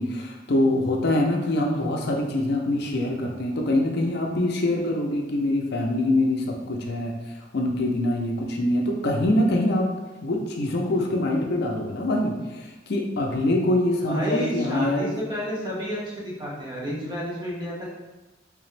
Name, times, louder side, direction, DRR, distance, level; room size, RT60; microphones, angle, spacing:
voice 1, 0.0-9.9 10.2-15.1, left 1 dB, 60° left, 1 dB, 0.5 m, -24 dB
voice 2, 14.1-17.8, equal, 25° right, -5 dB, 1.0 m, -30 dB
3.4 x 2.9 x 3.2 m, 1.1 s
head